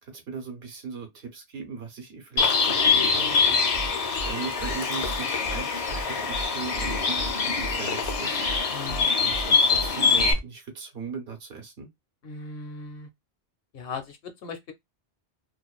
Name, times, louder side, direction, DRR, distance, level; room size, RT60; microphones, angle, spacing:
voice 1, 0.0-3.7 4.2-8.4 9.2-11.9, right 5 dB, 75° right, 1.0 m, -39 dB
Bird, 2.4-10.3, left 5 dB, 50° left, 0.5 m, -24 dB
sound 1, 3.7-3.9 4.2-4.3 4.6-4.7 5.0-5.2 5.5-5.6 5.9-6.0 6.3-6.5 6.7-7.3 7.6-7.7 8.0-8.2 8.5-8.6 8.9-9.0 9.3-9.5 9.7-9.9 10.2-10.4, right 2 dB, 55° right, 0.4 m, -35 dB
voice 2, 8.7-9.1 12.2-13.1 13.7-14.7, left 4 dB, 65° left, 0.8 m, -38 dB
2.5 x 2.2 x 2.2 m
omnidirectional pair, 1.1 m